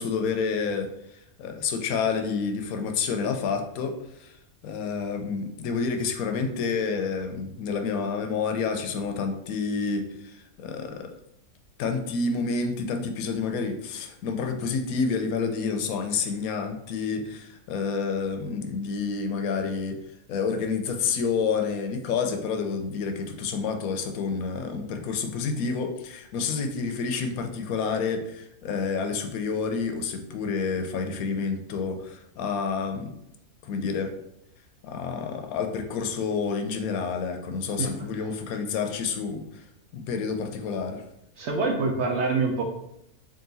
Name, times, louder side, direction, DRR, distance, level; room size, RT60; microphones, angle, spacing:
voice 1, 0.0-4.4 4.6-11.1 11.8-20.0 20.3-33.1 33.6-34.1 34.8-39.7 39.9-41.0, left 5 dB, 75° left, 5 dB, 1.0 m, -29 dB
voice 2, 41.4-42.6, right 3 dB, 60° right, 1 dB, 0.8 m, -25 dB
3.8 x 2.5 x 3.9 m, 0.79 s
omnidirectional pair, 1.5 m